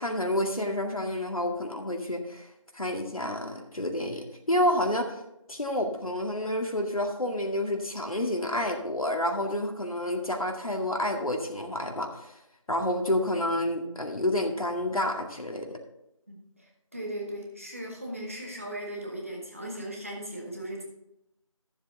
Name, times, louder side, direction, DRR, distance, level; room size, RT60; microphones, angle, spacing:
voice 1, 0.0-2.5 2.7-5.1 5.5-12.3 12.7-15.8, left 1 dB, 85° left, 3 dB, 2.0 m, -29 dB
voice 2, 16.3-20.8, right 1 dB, 25° right, -1 dB, 1.4 m, -38 dB
13.0 x 7.3 x 3.9 m, 0.86 s
figure-of-eight pair, 175°, 18 cm